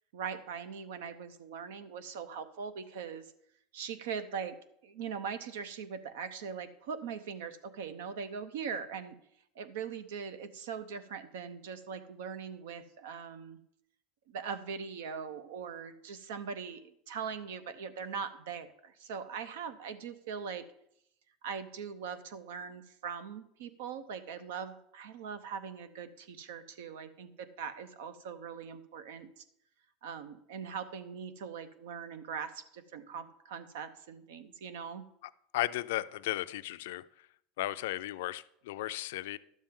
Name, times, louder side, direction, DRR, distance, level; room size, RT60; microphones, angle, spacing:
voice 1, 0.1-3.3 3.7-4.6 4.8-9.1 9.5-13.6 14.3-20.7 21.4-29.4 30.0-35.0, right 6 dB, 85° right, 0.8 m, -41 dB
voice 2, 35.5-37.3 37.6-39.4, left 16 dB, 80° left, 0.4 m, -35 dB
12.0 x 7.4 x 3.7 m
supercardioid pair, 140°, 0 cm